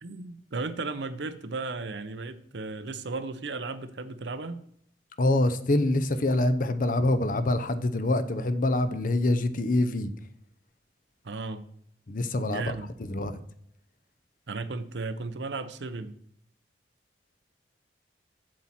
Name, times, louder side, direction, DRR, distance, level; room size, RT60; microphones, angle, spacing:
voice 1, 0.0-4.6 11.2-11.6 12.5-12.9 14.5-16.1, right 3 dB, 85° right, 11 dB, 0.7 m, -35 dB
voice 2, 5.2-10.1 12.1-13.3, left 2 dB, 50° left, 11 dB, 0.7 m, -25 dB
7.4 x 7.4 x 4.3 m, 0.68 s
head